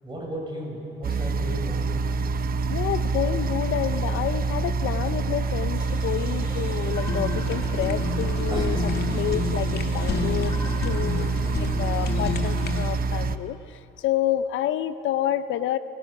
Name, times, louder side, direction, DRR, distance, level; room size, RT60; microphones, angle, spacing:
voice 1, 0.0-1.9 8.5-8.9, right 1 dB, 25° right, -1 dB, 7.9 m, -34 dB
sound 1, 1.0-13.4, right 4 dB, 50° right, 0.9 m, -26 dB
voice 2, 2.7-10.5 10.8-13.6 14.0-15.8, left 11 dB, 80° left, 13 dB, 0.7 m, -29 dB
sound 2, 5.8-12.9, left 1 dB, 20° left, 6.7 m, -43 dB
Fire, 6.6-12.9, left 6 dB, 55° left, 2.1 m, -31 dB
29.0 x 19.0 x 6.1 m, 2.7 s
cardioid pair, 90°, 20 cm